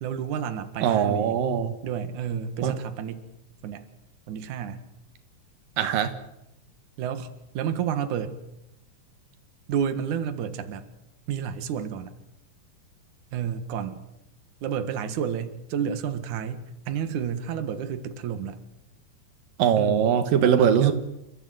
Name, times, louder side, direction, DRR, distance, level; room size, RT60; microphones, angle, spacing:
voice 1, 0.0-1.4 1.8-3.3 3.6-3.9 4.3-4.8 7.0-7.3 7.5-8.4 9.7-10.9 11.3-12.1 13.3-14.0 14.6-18.6 19.8-20.9, right 8 dB, 70° right, 9 dB, 2.9 m, -30 dB
voice 2, 0.8-1.7 2.6-2.7 5.8-6.1 19.6-20.9, right 8 dB, 85° right, 10 dB, 3.2 m, -21 dB
29.5 x 15.0 x 9.1 m, 0.89 s
omnidirectional pair, 3.8 m